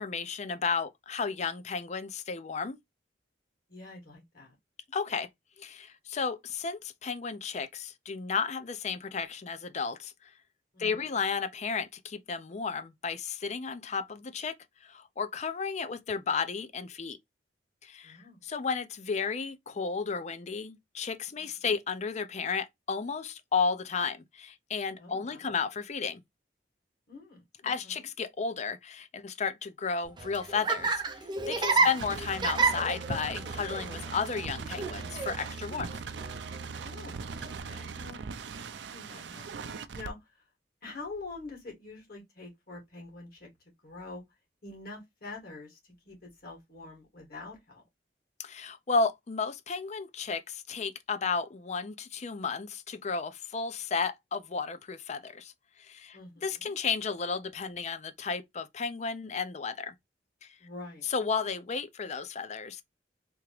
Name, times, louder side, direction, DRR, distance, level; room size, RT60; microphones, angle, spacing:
voice 1, 0.0-2.8 4.9-5.3 5.6-10.3 10.8-14.5 14.8-17.2 17.8-18.2 18.4-26.2 27.6-35.9 48.4-55.5 55.8-56.2 56.4-59.9 61.1-62.8, left 5 dB, 40° left, 0.5 m, -33 dB
voice 2, 3.7-4.6 10.7-10.9 18.0-18.4 21.4-21.5 25.0-25.5 27.1-28.1 31.7-32.1 35.7-35.9 36.8-38.2 38.9-40.4 40.8-43.5 43.8-44.2 44.6-47.8 56.1-56.7 60.6-61.1, left 3 dB, 60° left, 2.0 m, -46 dB
Laughter, 30.1-37.6, right 4 dB, 25° right, 0.7 m, -32 dB
sound 1, 31.8-40.1, right 5 dB, 85° right, 0.4 m, -40 dB
3.6 x 2.9 x 3.0 m
head